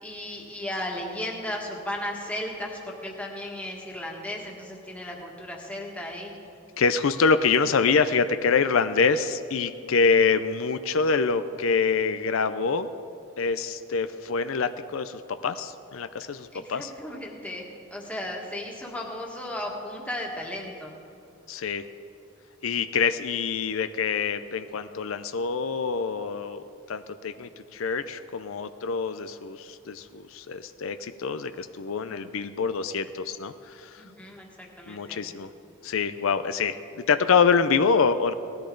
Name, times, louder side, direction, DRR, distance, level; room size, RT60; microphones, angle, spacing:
voice 1, 0.0-6.3 16.5-17.6 17.9-20.9 34.0-35.2, left 1 dB, 5° left, -2 dB, 1.7 m, -35 dB
voice 2, 6.8-12.9 13.4-16.9 21.5-21.9 22.6-34.0 34.9-35.5 35.8-36.8 37.1-38.3, left 5 dB, 80° left, 11 dB, 0.5 m, -25 dB
19.0 x 13.5 x 3.9 m, 2.8 s
head